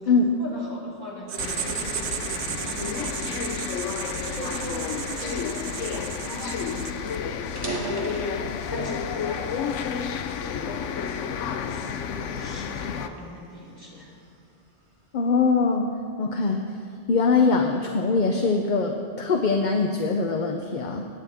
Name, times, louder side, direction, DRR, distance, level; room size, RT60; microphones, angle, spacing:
voice 1, 0.0-6.8 7.6-10.0 10.4-11.3 11.6-14.1, left 1 dB, 20° left, -9 dB, 3.8 m, -39 dB
Writing, 1.3-7.2, right 9 dB, 70° right, 0.9 m, -34 dB
sound 1, 1.4-13.1, left 7 dB, 90° left, 1.0 m, -31 dB
sound 2, 7.5-9.0 9.6-10.8 11.4-11.7 12.3-14.3, right 2 dB, 25° right, 1.7 m, -36 dB
voice 2, 15.1-16.6 17.1-21.1, left 4 dB, 45° left, 4 dB, 0.7 m, -22 dB
22.5 x 9.8 x 3.5 m, 2.5 s
omnidirectional pair, 1.2 m